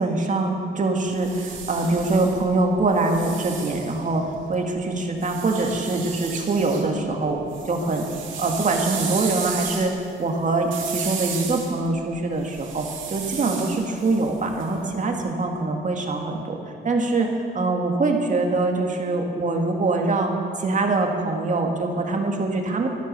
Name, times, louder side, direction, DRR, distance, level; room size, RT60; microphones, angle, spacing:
voice 1, 0.0-4.2 4.5-8.0 8.4-9.9 10.2-16.6 16.8-20.3 20.6-22.9, right 3 dB, 40° right, 2 dB, 2.1 m, -23 dB
sound 1, 1.0-4.5 5.2-6.9 7.2-15.1, right 6 dB, 80° right, 2.6 m, -34 dB
13.0 x 12.0 x 6.8 m, 2.5 s
cardioid pair, 90°, 20 cm